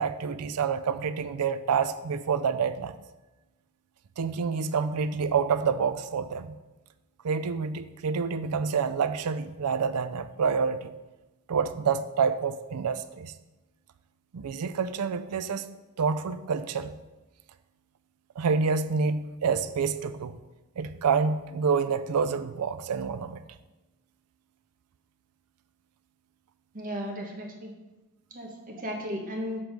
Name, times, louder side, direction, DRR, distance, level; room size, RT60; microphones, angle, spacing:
voice 1, 0.0-2.9 4.2-6.6 7.2-10.9 11.5-13.3 14.3-15.6 16.0-16.9 18.4-20.4 20.8-23.4, right 5 dB, 85° right, 12 dB, 0.4 m, -28 dB
voice 2, 26.7-27.7 28.3-29.6, equal, 40° right, 1 dB, 1.2 m, -35 dB
7.2 x 4.6 x 5.0 m, 1.1 s
head